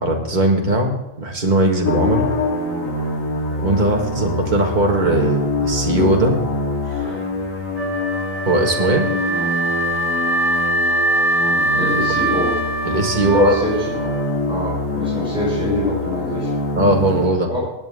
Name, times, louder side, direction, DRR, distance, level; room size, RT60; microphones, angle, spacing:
voice 1, 0.0-2.3 3.6-6.4 8.5-9.1 12.8-13.6 16.8-17.5, right 1 dB, 35° right, 1 dB, 1.9 m, -19 dB
sound 1, 1.8-17.3, left 2 dB, 85° left, 2.6 m, -25 dB
Wind instrument woodwind instrument, 7.7-14.8, right 1 dB, 70° right, 1.6 m, -22 dB
voice 2, 11.7-12.6 13.2-13.8 14.4-16.5 17.5-17.6, left 1 dB, 5° right, -7 dB, 5.7 m, -24 dB
19.0 x 8.9 x 3.7 m, 0.94 s
omnidirectional pair, 1.3 m